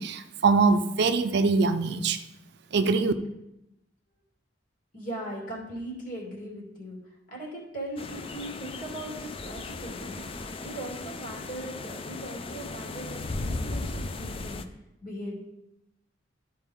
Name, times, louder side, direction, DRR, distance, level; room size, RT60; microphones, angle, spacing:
voice 1, 0.0-2.2 2.7-3.1, right 4 dB, 60° right, 9 dB, 0.5 m, -23 dB
voice 2, 4.9-10.2 10.6-14.6 15.0-15.4, right 1 dB, 45° left, -3 dB, 2.6 m, -39 dB
sound 1, 8.0-14.6, left 2 dB, 30° left, 0.4 m, -36 dB
12.5 x 4.5 x 3.5 m, 0.86 s
head